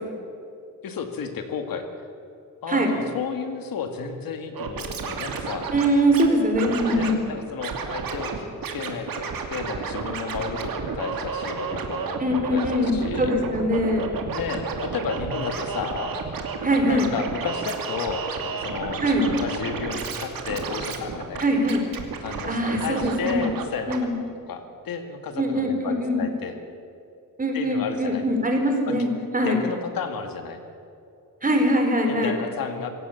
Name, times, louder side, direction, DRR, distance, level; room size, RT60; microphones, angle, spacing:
voice 1, 0.8-1.9 2.6-5.7 6.9-12.2 12.5-13.3 14.3-16.1 16.9-21.4 22.2-26.5 27.5-28.3 28.9-29.0 29.4-30.6 32.0-32.9, left 5 dB, 85° left, 6 dB, 2.3 m, -32 dB
Scratching (performance technique), 4.5-6.3 6.5-7.1 7.6-8.4 8.6-23.6 23.9-24.0, right 5 dB, 75° right, 2.6 m, -31 dB
voice 2, 5.7-7.2 12.2-14.1 16.6-17.1 19.0-19.2 21.4-21.8 22.3-23.5 23.9-24.1 25.4-26.2 27.4-29.6 31.4-32.3, equal, 25° right, 3 dB, 4.2 m, -22 dB
25.5 x 16.5 x 7.2 m, 2.7 s
wide cardioid pair, 130°, 34 cm